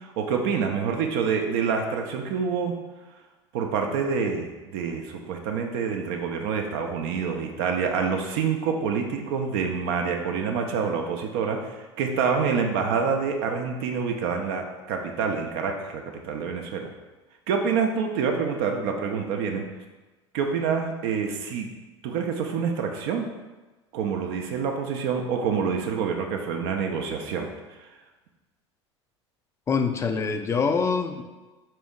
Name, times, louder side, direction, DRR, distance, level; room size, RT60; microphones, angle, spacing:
voice 1, 0.0-2.7 3.5-16.9 17.5-19.6 20.3-21.7 22.0-23.3 23.9-27.5, right 6 dB, 55° right, 3 dB, 0.5 m, -27 dB
voice 2, 29.7-31.2, left 5 dB, 20° left, 6 dB, 0.4 m, -24 dB
4.2 x 2.9 x 3.6 m, 1.2 s
figure-of-eight pair, 70°, 15 cm